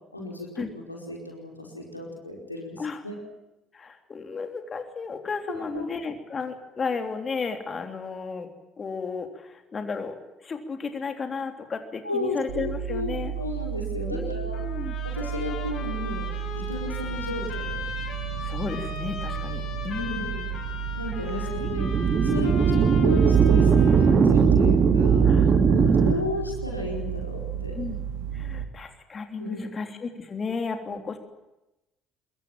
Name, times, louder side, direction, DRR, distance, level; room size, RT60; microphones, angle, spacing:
voice 1, 0.1-3.2 5.5-5.8 12.0-14.7 15.0-17.8 20.0-20.5 21.0-25.3 25.7-27.8 29.4-29.7 30.9-31.0, left 2 dB, 90° left, 0 dB, 4.9 m, -34 dB
voice 2, 3.7-8.5 8.8-13.3 14.1-15.0 18.4-20.3 21.4-21.5 22.7-22.9 25.2-25.6 25.9-26.2 27.8-28.0 28.3-31.2, left 4 dB, 30° left, 6 dB, 3.4 m, -33 dB
sound 1, 12.5-28.6, right 9 dB, 65° right, 1.9 m, -33 dB
Trumpet, 14.5-24.2, left 6 dB, 55° left, 7.1 m, -39 dB
sound 2, 21.5-26.1, right 6 dB, 40° right, 2.8 m, -19 dB
26.0 x 22.5 x 9.0 m, 0.95 s
figure-of-eight pair, 50°, 0 cm